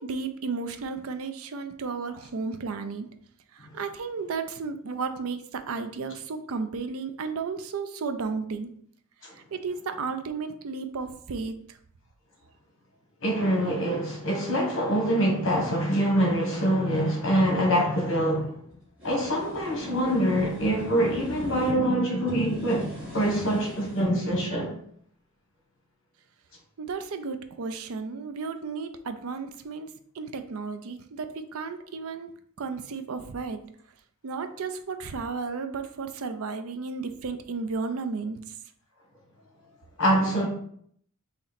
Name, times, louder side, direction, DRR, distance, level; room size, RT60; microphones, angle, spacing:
voice 1, 0.0-3.1 3.5-8.7 9.4-11.8 26.8-32.3 32.6-33.6 34.2-38.5, right 4 dB, 70° right, 0.5 m, -33 dB
voice 2, 13.2-18.6 19.0-24.8 40.0-40.5, equal, 60° left, 1.3 m, -25 dB
sound 1, 18.7-21.8 22.2-24.1, left 1 dB, 5° right, 1.9 m, -41 dB
4.1 x 2.9 x 4.0 m
head